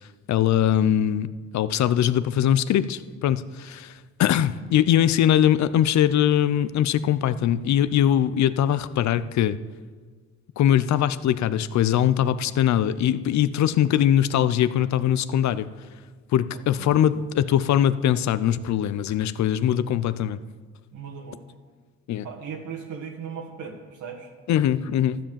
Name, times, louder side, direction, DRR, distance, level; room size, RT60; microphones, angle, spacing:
voice 1, 0.3-1.3 1.5-3.9 4.2-9.6 10.6-15.7 16.3-20.4 22.1-22.3 24.5-25.2, left 10 dB, 65° left, 15 dB, 0.6 m, -21 dB
voice 2, 20.9-21.4 22.2-24.3, right 6 dB, 75° right, 0 dB, 1.8 m, -37 dB
13.0 x 7.6 x 7.0 m, 1.4 s
cardioid pair, 90°, 30 cm